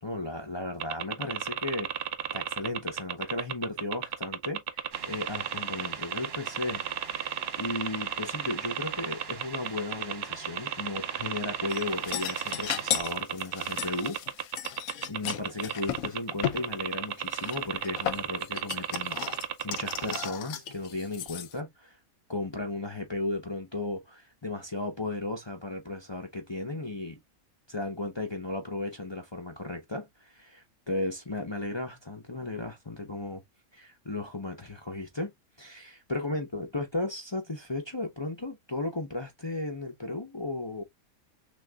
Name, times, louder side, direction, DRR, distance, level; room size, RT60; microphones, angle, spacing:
voice 1, 0.0-2.0 2.3-7.2 7.6-14.5 15.1-22.0 22.3-27.2 27.7-33.4 33.7-35.3 35.6-40.8, left 2 dB, 25° left, 0.6 m, -35 dB
sound 1, 0.8-20.3, right 10 dB, 65° right, 0.6 m, -33 dB
sound 2, 4.9-13.0, right 5 dB, 50° right, 1.1 m, -45 dB
sound 3, 11.7-16.6 17.3-21.5, left 10 dB, 80° left, 1.0 m, -35 dB
6.3 x 2.5 x 2.2 m
omnidirectional pair, 1.5 m